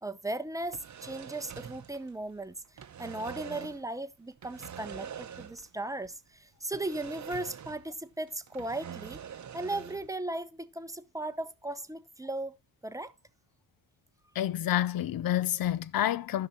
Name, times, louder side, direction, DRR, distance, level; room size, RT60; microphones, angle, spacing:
voice 1, 0.0-2.6 3.0-9.2 9.5-12.6 12.8-13.1, right 2 dB, 10° right, 0.7 m, -37 dB
sound 1, 0.6-2.4 2.6-3.9 4.4-5.8 6.0-6.1 6.7-8.0 8.3-10.1, right 8 dB, 40° right, 0.9 m, -44 dB
voice 2, 14.4-16.5, left 12 dB, 55° left, 0.6 m, -28 dB
15.0 x 5.8 x 2.8 m
cardioid pair, 95°, 44 cm